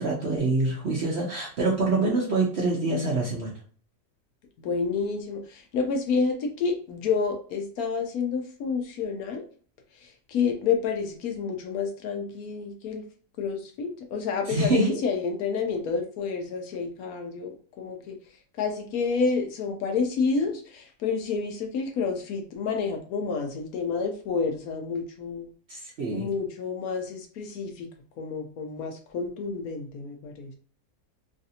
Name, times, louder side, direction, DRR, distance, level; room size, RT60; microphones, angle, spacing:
voice 1, 0.0-3.5 14.5-14.9 25.7-26.3, right 2 dB, 60° right, -2 dB, 0.7 m, -25 dB
voice 2, 4.6-9.5 9.9-13.0 13.4-18.2 18.6-25.5 26.1-27.9 28.2-30.5, left 5 dB, 70° left, 4 dB, 1.0 m, -29 dB
3.2 x 2.5 x 2.7 m, 0.43 s
omnidirectional pair, 1.7 m